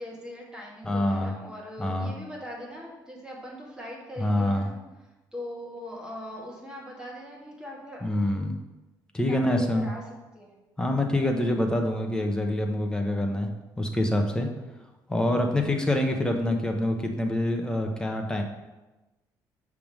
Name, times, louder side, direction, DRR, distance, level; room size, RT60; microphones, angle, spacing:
voice 1, 0.0-8.0 9.3-10.0 10.3-10.6, equal, 10° right, -3 dB, 2.0 m, -41 dB
voice 2, 0.8-1.3 1.8-2.1 4.2-4.7 8.0-8.6 9.1-9.9 10.8-13.5 13.8-14.5 15.1-18.4, left 1 dB, 10° left, 3 dB, 1.0 m, -26 dB
6.9 x 3.6 x 6.2 m, 1.1 s
cardioid pair, 115°, 8 cm